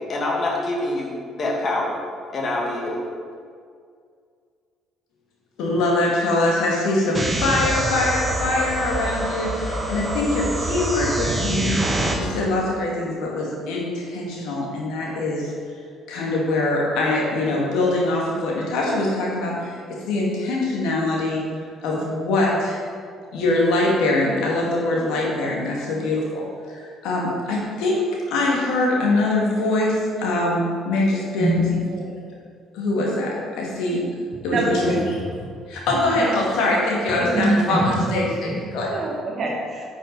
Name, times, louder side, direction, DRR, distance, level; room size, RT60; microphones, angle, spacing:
voice 1, 0.0-2.0 2.3-3.0, left 2 dB, 45° left, -1 dB, 2.1 m, -25 dB
voice 2, 5.6-11.8 12.1-15.5 16.1-19.8 20.1-21.4 21.8-22.8 23.3-28.0 28.3-31.6 32.7-34.0 34.4-35.2 35.7-38.9, left 2 dB, 65° left, -3 dB, 2.1 m, -23 dB
sound 1, 7.1-12.1, right 1 dB, 25° right, 1.7 m, -25 dB
voice 3, 34.5-35.2 36.1-36.3 37.3-37.9 38.4-38.6 38.9-39.9, right 1 dB, 45° right, -2 dB, 2.1 m, -24 dB
10.0 x 6.5 x 4.0 m, 2.2 s
hypercardioid pair, 50°, 0 cm